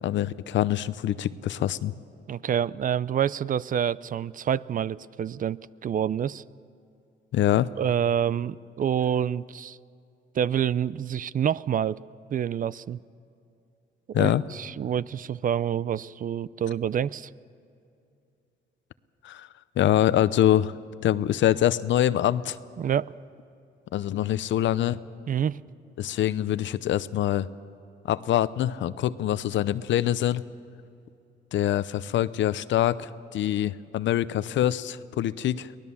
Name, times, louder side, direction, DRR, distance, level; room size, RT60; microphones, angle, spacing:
voice 1, 0.0-1.9 7.3-7.7 14.1-14.4 19.2-19.5 19.8-20.7 21.0-22.6 23.9-25.0 26.0-27.5 28.0-30.4 31.5-35.7, left 12 dB, 70° left, 16 dB, 0.7 m, -24 dB
voice 2, 2.3-6.4 7.8-9.8 10.3-12.0 12.3-13.0 14.1-17.3 22.8-23.1 25.3-25.6, right 9 dB, 45° right, 19 dB, 0.4 m, -27 dB
23.5 x 18.5 x 7.2 m, 2.6 s
cardioid pair, 90°, 20 cm